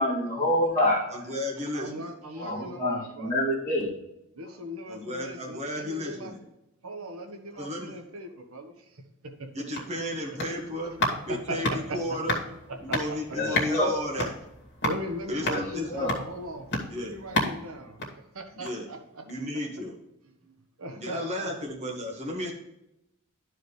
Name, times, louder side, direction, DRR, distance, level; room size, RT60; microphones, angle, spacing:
voice 1, 0.0-1.0 2.4-3.9 13.3-14.0 15.5-16.2, left 1 dB, 15° left, -11 dB, 2.4 m, -27 dB
voice 2, 1.1-2.1 4.9-6.4 7.6-8.0 9.5-10.9 11.2-12.4 12.8-14.3 15.3-15.9 16.9-17.1 18.5-18.9 19.3-19.9 20.9-22.5, left 1 dB, 30° right, -2 dB, 1.6 m, -33 dB
voice 3, 1.7-3.3 4.4-6.3 6.8-8.7 9.4-9.5 11.3-12.4 12.7-13.0 14.8-16.7 17.0-18.0 18.3-19.2 20.4-20.5 20.8-21.5, right 1 dB, 80° right, 5 dB, 1.1 m, -38 dB
sound 1, 9.4-18.9 19.3-19.4, left 2 dB, 50° left, 2.1 m, -33 dB
12.0 x 4.9 x 3.2 m, 0.87 s
head